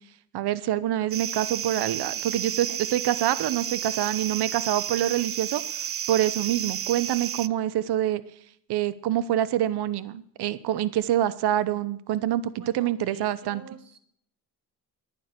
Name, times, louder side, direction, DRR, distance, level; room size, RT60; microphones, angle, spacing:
voice 1, 0.3-5.6 6.1-8.2 8.7-13.6, right 12 dB, 80° right, 17 dB, 0.9 m, -26 dB
sound 1, 1.1-7.5, right 10 dB, 35° right, 0.4 m, -32 dB
voice 2, 12.6-14.0, right 7 dB, 60° right, 10 dB, 2.1 m, -47 dB
11.0 x 9.3 x 7.8 m, 0.65 s
cardioid pair, 80°, 39 cm